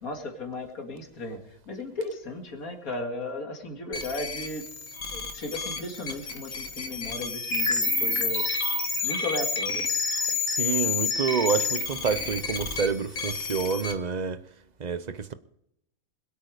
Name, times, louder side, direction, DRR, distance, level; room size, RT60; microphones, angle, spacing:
voice 1, 0.0-4.6 5.1-8.5 9.0-10.0, left 2 dB, 85° left, 2.5 m, -35 dB
sound 1, 3.9-13.9, left 4 dB, 65° left, 1.8 m, -29 dB
voice 2, 10.5-14.4 14.8-15.3, right 6 dB, 40° right, 0.7 m, -28 dB
21.5 x 8.6 x 5.0 m
omnidirectional pair, 1.5 m